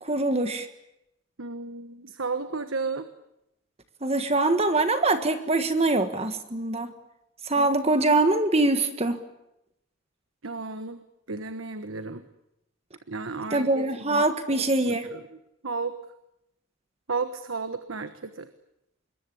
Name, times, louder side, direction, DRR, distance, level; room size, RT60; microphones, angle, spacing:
voice 1, 0.0-0.7 4.0-6.9 7.5-9.2 13.5-15.1, right 2 dB, 30° right, 8 dB, 1.5 m, -23 dB
voice 2, 1.4-3.1 7.5-7.7 10.4-12.2 13.1-14.2 14.5-15.2 15.6-15.9 17.1-18.5, right 4 dB, 80° right, 10 dB, 1.3 m, -33 dB
26.0 x 22.0 x 8.5 m, 0.84 s
head